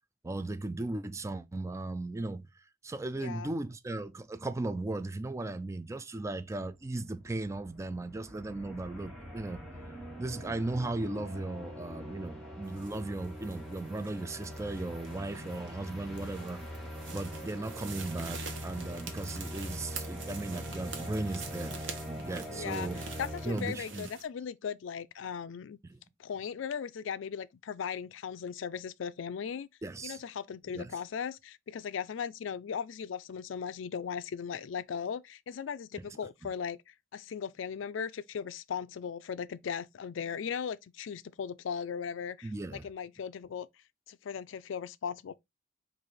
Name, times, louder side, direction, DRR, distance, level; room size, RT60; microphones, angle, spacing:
voice 1, 0.2-9.7 10.2-16.6 17.1-23.0 23.4-24.1 25.8-26.0 29.8-30.2 30.7-30.9 36.0-36.1 42.4-42.9, right 2 dB, 15° right, 0.3 m, -37 dB
voice 2, 3.2-3.5 22.5-22.9 23.2-25.8 26.2-29.7 30.0-43.7 44.1-45.3, left 7 dB, 75° left, 0.4 m, -38 dB
sound 1, 6.7-24.0, equal, ahead, 1.6 m, -43 dB
sound 2, 12.7-24.2, right 5 dB, 70° right, 1.0 m, -47 dB
4.7 x 2.6 x 4.1 m
head